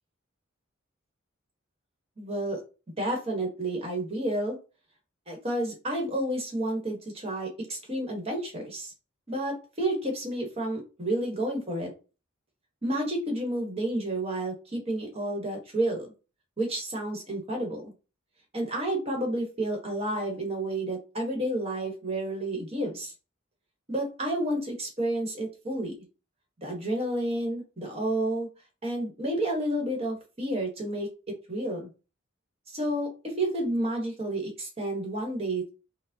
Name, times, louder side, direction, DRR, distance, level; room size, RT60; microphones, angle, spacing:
voice 1, 2.2-2.6 3.0-4.6 5.3-8.9 9.3-11.9 12.8-16.1 16.6-17.8 18.5-23.1 23.9-25.9 26.6-28.5 28.8-31.1 31.5-31.9 32.7-35.7, right 1 dB, 30° right, 2 dB, 1.1 m, -30 dB
4.6 x 2.0 x 2.7 m, 0.32 s
head